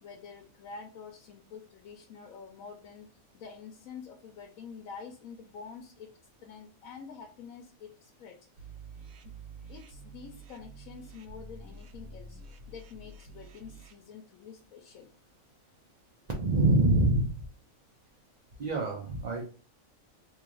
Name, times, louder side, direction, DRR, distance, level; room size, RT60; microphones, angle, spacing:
voice 1, 0.0-3.1 3.3-6.1 6.4-8.7 9.2-9.3 9.7-12.4 12.7-15.1, left 6 dB, 80° left, 2 dB, 1.0 m, -47 dB
sound 1, 8.6-13.9, right 3 dB, 75° right, 1.0 m, -48 dB
voice 2, 16.3-17.3 18.6-19.5, right 2 dB, 45° right, -1 dB, 0.6 m, -25 dB
3.1 x 2.7 x 3.7 m, 0.38 s
omnidirectional pair, 1.4 m